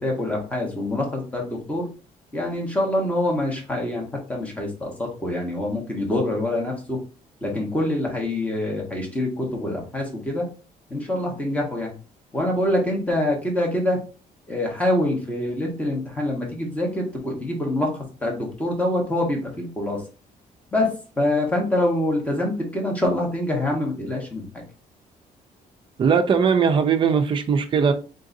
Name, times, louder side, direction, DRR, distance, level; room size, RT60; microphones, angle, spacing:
voice 1, 0.0-1.9 2.3-7.0 7.4-10.5 10.9-11.9 12.3-14.0 14.5-20.0 20.7-20.9 21.2-24.5, left 1 dB, 10° left, 1.3 m, -25 dB
voice 2, 26.0-27.9, right 6 dB, 35° right, 0.5 m, -19 dB
3.8 x 3.8 x 2.7 m
cardioid pair, 155°, 14 cm